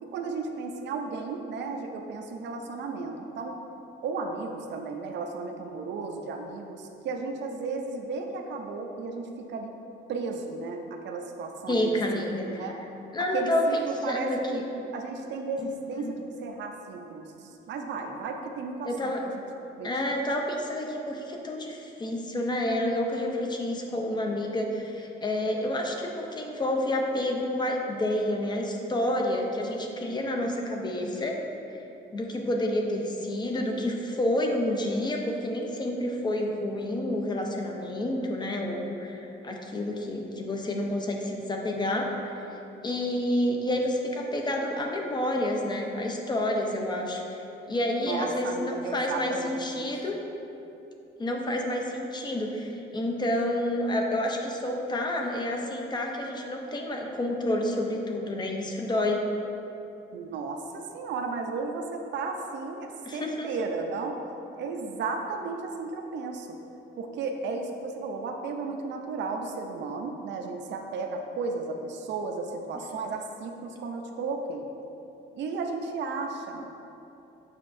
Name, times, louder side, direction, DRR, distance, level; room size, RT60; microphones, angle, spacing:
voice 1, 0.0-3.6 4.0-9.7 10.1-12.8 13.3-14.7 14.9-19.1 19.8-19.9 48.0-49.9 60.1-64.2 64.6-66.6 67.0-74.7 75.3-76.7, right 4 dB, 60° right, 3 dB, 0.5 m, -34 dB
voice 2, 11.7-12.6 13.1-14.6 15.6-15.7 16.0-16.3 18.8-19.2 19.8-31.4 32.1-42.4 42.8-47.4 47.7-50.2 51.2-59.2 63.1-63.5, left 1 dB, 20° left, 1 dB, 0.5 m, -29 dB
7.4 x 5.6 x 2.6 m, 2.9 s
cardioid pair, 175°, 21 cm